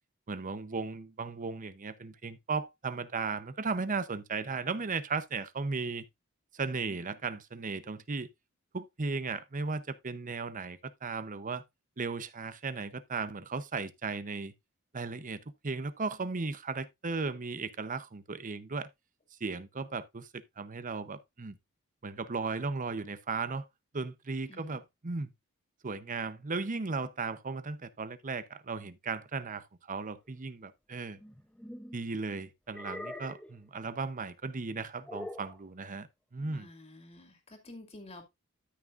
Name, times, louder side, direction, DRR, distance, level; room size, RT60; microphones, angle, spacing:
voice 1, 0.3-6.0 6.5-8.3 8.7-11.6 12.0-14.5 14.9-18.9 19.4-20.3 20.6-21.6 22.0-23.7 23.9-25.3 25.8-31.2 31.9-36.1 36.3-36.7, right 4 dB, 40° right, 0.8 m, -36 dB
voice 2, 24.5-24.8 36.5-38.3, left 2 dB, 30° left, 2.3 m, -50 dB
sound 1, 31.2-32.0 32.7-33.6 35.1-35.6, left 1 dB, 5° left, 0.7 m, -43 dB
13.0 x 6.0 x 2.5 m
head